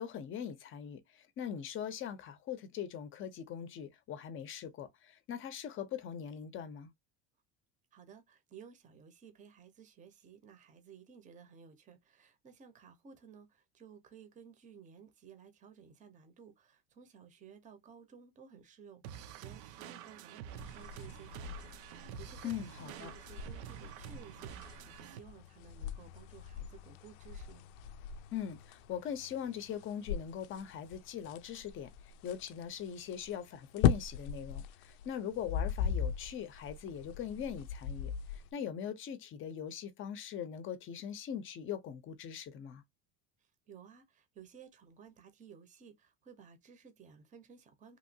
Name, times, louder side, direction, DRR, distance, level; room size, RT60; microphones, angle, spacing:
voice 1, 0.0-6.9 22.4-23.1 28.3-31.9 32.2-42.8, left 9 dB, 35° left, 0.6 m, -41 dB
voice 2, 7.9-27.7 43.7-48.0, right 7 dB, 20° right, 0.6 m, -56 dB
sound 1, 19.0-25.2, right 10 dB, 85° right, 0.5 m, -48 dB
sound 2, 20.5-38.5, left 8 dB, 85° left, 0.5 m, -39 dB
2.9 x 2.7 x 2.6 m
cardioid pair, 145°, 34 cm